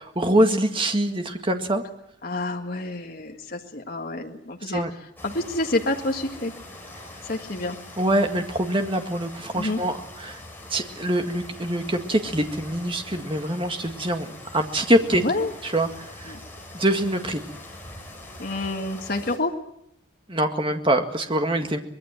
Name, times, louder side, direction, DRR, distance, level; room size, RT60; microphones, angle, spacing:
voice 1, 0.0-1.8 4.7-4.9 8.0-10.4 10.7-15.2 15.7-16.3 16.7-17.4 20.3-21.8, right 1 dB, 25° right, 5 dB, 1.9 m, -24 dB
voice 2, 2.2-4.8 5.2-6.5 7.2-7.8 9.5-9.8 15.1-15.5 16.3-16.4 18.4-19.5, left 2 dB, 45° left, 2 dB, 1.9 m, -28 dB
sound 1, 5.2-19.4, left 1 dB, 10° left, 5.2 m, -43 dB
24.5 x 20.5 x 7.5 m, 0.76 s
head